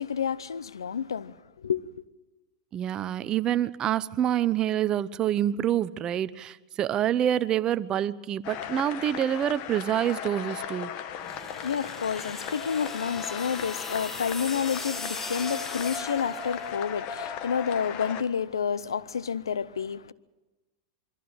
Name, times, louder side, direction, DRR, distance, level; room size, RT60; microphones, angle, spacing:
voice 1, 0.0-1.8 11.3-20.1, left 7 dB, 90° left, 0.7 m, -30 dB
voice 2, 2.7-10.9, right 11 dB, 35° right, 0.8 m, -27 dB
sound 1, 8.4-18.2, left 8 dB, 50° left, 1.7 m, -37 dB
sound 2, 11.1-17.0, left 3 dB, 15° left, 2.1 m, -39 dB
23.5 x 14.5 x 8.9 m
hypercardioid pair, 105°, 2 cm